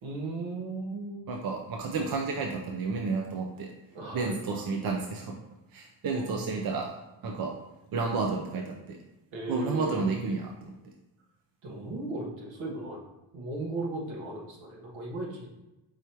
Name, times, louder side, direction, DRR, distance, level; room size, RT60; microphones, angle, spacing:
voice 1, 0.0-1.2 3.9-4.4 6.1-6.7 9.3-10.4 11.6-13.0 13.3-15.5, right 2 dB, 65° right, -1 dB, 1.3 m, -36 dB
voice 2, 1.3-3.7 4.1-5.3 5.7-6.9 7.2-7.5 7.9-9.0 9.5-10.7, right 4 dB, 45° right, 1 dB, 0.6 m, -31 dB
4.8 x 3.2 x 2.9 m, 0.99 s
cardioid pair, 95°, 50 cm